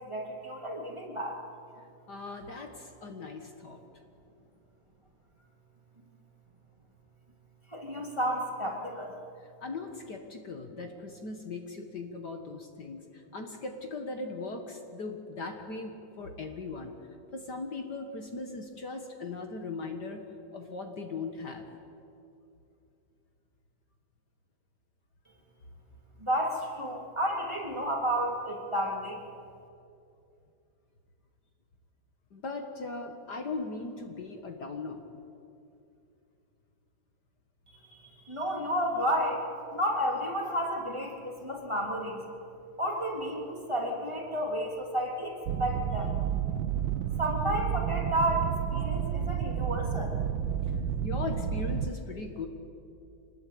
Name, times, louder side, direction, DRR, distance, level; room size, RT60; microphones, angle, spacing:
voice 1, 0.0-1.4 7.7-9.1 26.2-29.2 38.0-39.4 39.7-42.2 42.8-46.3 47.2-50.1, equal, 15° right, -1 dB, 3.2 m, -31 dB
voice 2, 2.1-3.8 9.6-16.9 17.3-20.2 20.5-21.7 32.3-35.0 48.8-49.0 51.0-52.5, left 3 dB, 55° left, 4 dB, 2.1 m, -39 dB
sound 1, 45.5-51.9, right 9 dB, 70° right, 1.4 m, -31 dB
25.5 x 20.5 x 8.7 m, 2.7 s
omnidirectional pair, 2.2 m